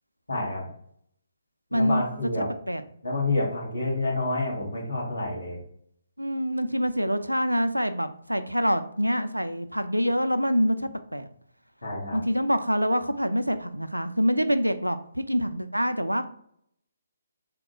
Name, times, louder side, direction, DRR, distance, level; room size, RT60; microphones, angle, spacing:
voice 1, 0.3-0.7 1.7-2.5 3.0-5.6 11.8-12.2, left 2 dB, 75° left, -3 dB, 1.6 m, -28 dB
voice 2, 1.7-2.0 2.4-2.8 6.2-11.3 12.1-16.3, equal, 90° right, 9 dB, 0.4 m, -26 dB
3.6 x 2.2 x 4.3 m, 0.66 s
figure-of-eight pair, 140°, 0 cm